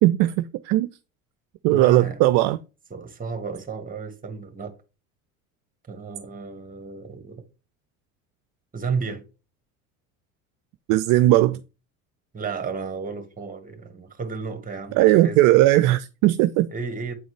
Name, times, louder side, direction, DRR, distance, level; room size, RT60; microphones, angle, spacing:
voice 1, 0.0-0.9 1.6-2.6 10.9-11.6 15.0-16.7, right 16 dB, 50° right, 0.5 m, -18 dB
voice 2, 1.7-2.5 2.9-4.7 5.9-7.4 8.7-9.2 12.3-15.4 16.7-17.1, right 5 dB, 20° right, 1.6 m, -32 dB
8.7 x 3.8 x 3.3 m
hypercardioid pair, 70°, 42 cm